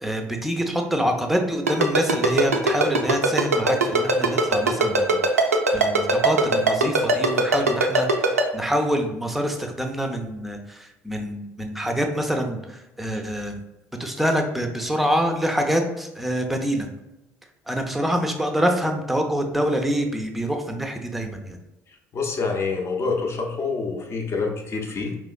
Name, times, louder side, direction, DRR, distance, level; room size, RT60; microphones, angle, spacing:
voice 1, 0.0-13.6 14.0-16.9 17.7-21.6, equal, ahead, 4 dB, 0.6 m, -26 dB
Ringtone, 1.7-8.4, right 3 dB, 80° right, 0.4 m, -19 dB
voice 2, 22.1-25.2, left 4 dB, 35° left, 2 dB, 0.7 m, -26 dB
4.9 x 3.1 x 2.3 m, 0.97 s
figure-of-eight pair, 60°, 8 cm